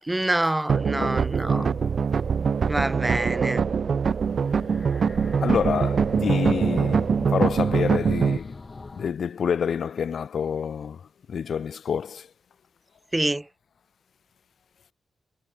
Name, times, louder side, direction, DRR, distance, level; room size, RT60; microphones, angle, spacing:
voice 1, 0.0-1.7 2.6-3.6 13.1-13.5, right 1 dB, 15° right, 2.6 m, -26 dB
sound 1, 0.7-8.4, right 6 dB, 55° right, 0.6 m, -23 dB
voice 2, 0.9-1.9 2.2-2.3 5.4-8.6 9.0-11.0 11.3-12.3, left 7 dB, 65° left, 2.1 m, -28 dB
sound 2, 4.2-9.1, left 3 dB, 30° left, 5.9 m, -41 dB
wide cardioid pair, 120°, 0 cm